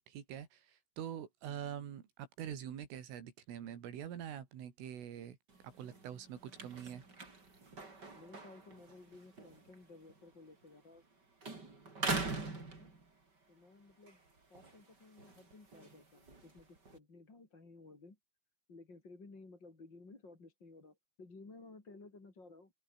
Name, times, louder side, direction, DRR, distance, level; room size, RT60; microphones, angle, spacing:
voice 1, 0.0-5.4 5.6-7.0, right 9 dB, 85° right, 5.7 m, -45 dB
sound 1, 5.5-11.1 11.4-13.4 13.9-17.0, right 3 dB, 20° right, 4.4 m, -44 dB
voice 2, 8.1-11.0 12.0-12.9 13.5-14.2 14.5-18.2 18.7-22.7, left 3 dB, 25° left, 4.5 m, -56 dB
open air
omnidirectional pair, 5.6 m